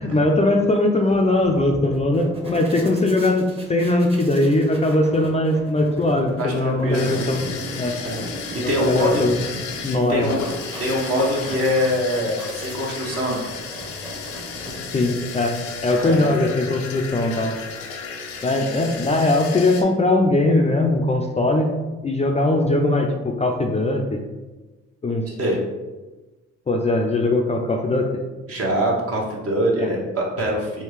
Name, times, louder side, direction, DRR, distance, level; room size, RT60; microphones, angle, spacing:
voice 1, 0.0-7.5 7.8-8.0 8.6-9.4 9.8-10.3 14.9-15.6 15.8-17.6 18.4-21.7 22.0-24.2 25.0-25.3 26.7-28.2 29.8-29.9, left 2 dB, 25° left, 2 dB, 0.4 m, -20 dB
sound 1, 1.1-15.4, equal, 20° right, 0.9 m, -38 dB
voice 2, 6.4-7.3 8.0-8.3 8.5-9.2 10.1-10.4 10.8-13.4 16.0-16.3 25.3-25.6 28.5-30.8, equal, 50° right, -2 dB, 1.1 m, -23 dB
sound 2, 6.9-19.8, left 5 dB, 90° left, 0.5 m, -34 dB
3.5 x 2.3 x 3.2 m, 1.2 s
supercardioid pair, 60°, 29 cm